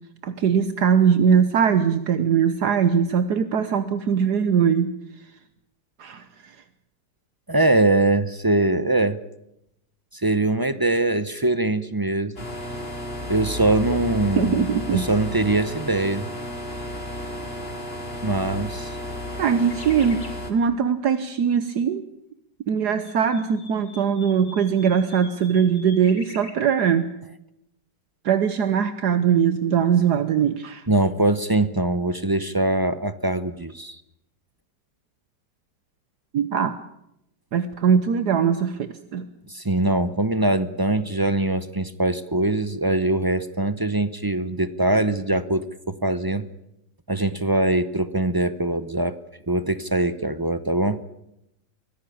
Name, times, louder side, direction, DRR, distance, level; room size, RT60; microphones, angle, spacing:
voice 1, 0.2-4.9 6.0-6.6 14.4-15.1 19.4-20.2 20.5-22.0 22.7-27.1 28.2-30.9 36.3-36.8 37.5-39.2, right 7 dB, 70° right, 12 dB, 1.5 m, -21 dB
voice 2, 7.5-9.2 10.1-12.3 13.3-16.3 18.2-19.0 30.9-34.0 39.5-46.5 47.1-49.1 49.5-51.0, right 2 dB, 20° right, 13 dB, 0.5 m, -22 dB
sound 1, 12.4-20.5, left 1 dB, 35° left, 3.2 m, -33 dB
sound 2, 19.6-20.4 22.8-26.5, left 3 dB, 90° left, 4.3 m, -44 dB
24.0 x 16.5 x 8.6 m, 0.81 s
omnidirectional pair, 1.8 m